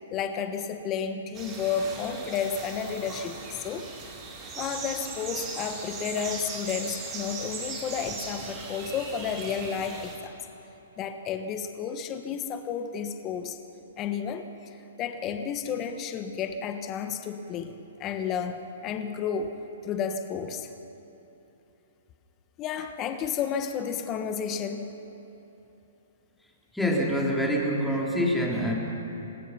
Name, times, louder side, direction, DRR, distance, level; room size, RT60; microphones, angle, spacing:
voice 1, 0.1-3.9 4.6-10.4 11.0-13.6 14.0-19.5 19.8-20.7 22.6-24.9, left 7 dB, 30° left, 7 dB, 1.2 m, -32 dB
fondo audio località foresta, 1.3-10.2, right 4 dB, 25° right, 4.9 m, -38 dB
voice 2, 26.7-28.7, equal, 5° left, -3 dB, 3.2 m, -25 dB
26.0 x 19.5 x 5.8 m, 3.0 s
hypercardioid pair, 135°, 0 cm